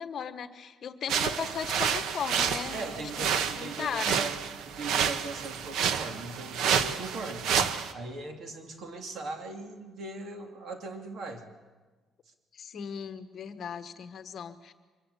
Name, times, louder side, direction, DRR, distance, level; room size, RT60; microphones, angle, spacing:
voice 1, 0.0-3.3 3.6-4.2 12.5-14.7, left 7 dB, 45° left, 9 dB, 1.3 m, -37 dB
sound 1, 1.1-7.9, right 7 dB, 75° right, 1.2 m, -29 dB
voice 2, 2.7-4.4 4.7-7.5 7.9-11.4, right 3 dB, 50° right, 5 dB, 2.8 m, -39 dB
24.5 x 22.5 x 8.3 m, 1.3 s
cardioid pair, 150°, 0 cm